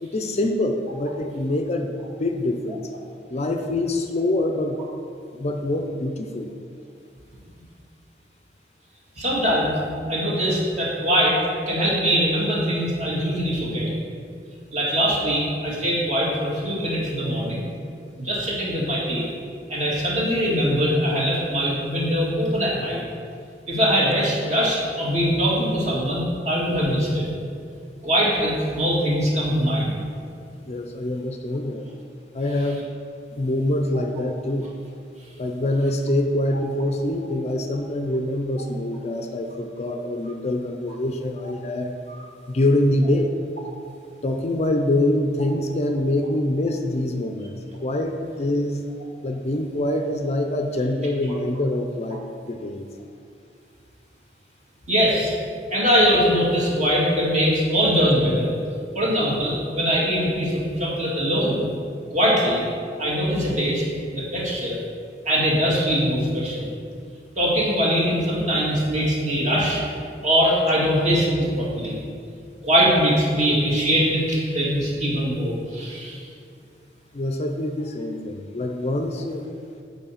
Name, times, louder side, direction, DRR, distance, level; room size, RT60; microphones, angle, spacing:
voice 1, 0.0-2.9 3.3-4.8 5.3-6.5 30.6-31.8 32.3-32.9 33.4-34.7 35.4-41.9 42.5-43.3 44.2-47.5 47.8-48.9 49.2-52.9 77.1-79.5, left 1 dB, 40° left, 5 dB, 0.5 m, -25 dB
voice 2, 9.2-9.8 10.1-11.4 11.7-13.9 14.7-17.6 18.2-19.3 19.7-23.0 23.7-27.3 28.0-30.0 42.1-42.2 54.9-55.4 55.7-58.5 58.9-61.7 62.1-62.6 63.0-63.8 64.1-64.8 65.3-66.7 67.4-69.8 70.2-72.0 72.6-76.2, equal, 40° right, -6 dB, 2.0 m, -22 dB
7.9 x 4.5 x 5.7 m, 2.3 s
head